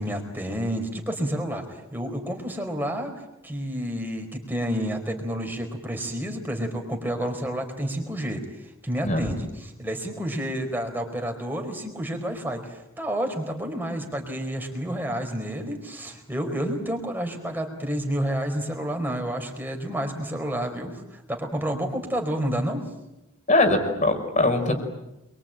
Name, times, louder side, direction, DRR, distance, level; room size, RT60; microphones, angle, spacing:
voice 1, 0.0-3.1 3.4-22.8, equal, 10° right, 3 dB, 4.6 m, -30 dB
voice 2, 23.5-24.8, left 2 dB, 35° left, 6 dB, 4.6 m, -21 dB
27.5 x 24.0 x 9.0 m, 0.92 s
head